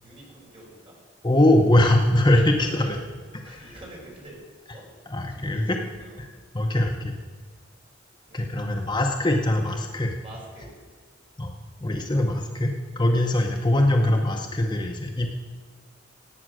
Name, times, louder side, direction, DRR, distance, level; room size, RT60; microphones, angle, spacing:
voice 1, 0.0-0.9 2.3-2.9 3.4-4.4 4.7-4.8 5.3-6.2 8.3-8.5 10.1-10.7 13.2-13.3, right 1 dB, 30° right, -3 dB, 5.1 m, -45 dB
voice 2, 1.2-3.0 3.3-3.7 5.1-5.8 6.2-6.3 6.5-7.1 8.3-10.2 11.4-11.5 11.8-15.3, left 1 dB, 25° left, 2 dB, 0.9 m, -22 dB
17.5 x 8.8 x 6.3 m, 1.5 s
head